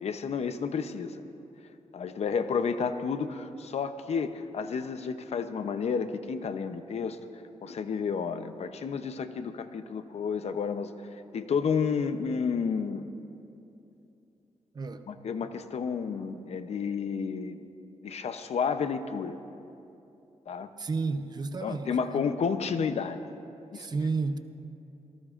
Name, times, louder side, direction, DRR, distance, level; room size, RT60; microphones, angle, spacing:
voice 1, 0.0-1.2 1.9-7.2 7.6-10.9 11.3-13.1 15.1-17.6 18.0-19.4 20.5-20.7 21.6-23.2 23.7-23.9, left 6 dB, 65° left, 10 dB, 0.7 m, -31 dB
voice 2, 14.7-15.1 20.8-22.3 23.7-24.4, right 4 dB, 35° right, 9 dB, 0.6 m, -32 dB
25.5 x 18.5 x 2.5 m, 2.8 s
wide cardioid pair, 145°, 12 cm